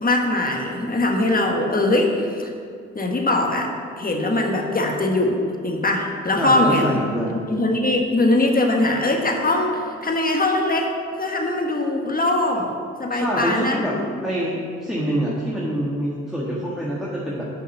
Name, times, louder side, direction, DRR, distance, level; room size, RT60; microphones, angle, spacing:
voice 1, 0.0-2.5 2.9-7.0 7.3-10.9 11.2-12.7 13.0-13.8, left 2 dB, 30° left, 2 dB, 1.5 m, -21 dB
voice 2, 6.4-7.4 13.1-13.9 14.2-17.5, equal, ahead, -6 dB, 1.6 m, -26 dB
6.1 x 5.6 x 6.8 m, 2.2 s
hypercardioid pair, 45°, 30 cm